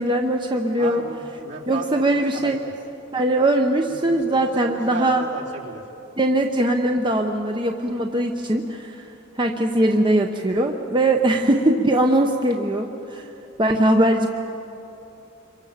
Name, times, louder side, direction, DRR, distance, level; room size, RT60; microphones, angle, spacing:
voice 1, 0.0-1.0 1.7-2.6 3.1-5.3 6.2-9.0 9.4-13.3 13.6-14.3, right 1 dB, 25° right, 3 dB, 1.0 m, -21 dB
voice 2, 0.8-2.7 3.9-5.8, right 2 dB, 65° right, -2 dB, 3.6 m, -35 dB
27.0 x 24.0 x 7.4 m, 3.0 s
head